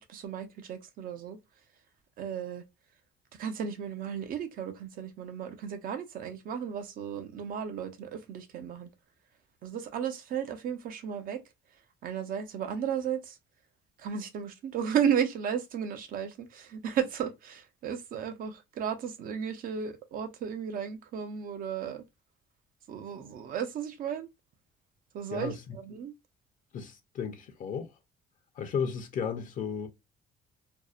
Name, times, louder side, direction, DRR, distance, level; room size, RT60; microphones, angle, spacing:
voice 1, 0.0-1.4 2.2-2.6 3.4-8.9 9.6-11.4 12.0-13.4 14.0-22.0 22.9-24.3 25.1-26.1, right 8 dB, 55° right, 0.6 m, -34 dB
voice 2, 26.7-27.9 28.6-29.9, left 6 dB, 50° left, 0.5 m, -34 dB
2.6 x 2.0 x 2.4 m
cardioid pair, 110°, 17 cm